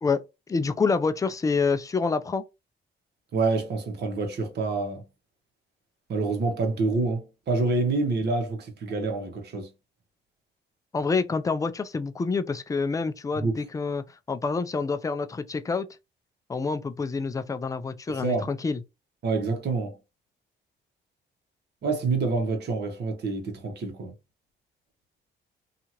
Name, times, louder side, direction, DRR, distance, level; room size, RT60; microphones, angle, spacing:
voice 1, 0.0-2.4 10.9-15.9 16.5-18.8, left 4 dB, 15° left, 0.3 m, -27 dB
voice 2, 3.3-5.0 6.1-9.7 13.3-13.6 18.1-18.5 19.2-20.0 21.8-24.1, right 3 dB, 55° right, 1.1 m, -27 dB
2.7 x 2.4 x 2.9 m
cardioid pair, 90°, 20 cm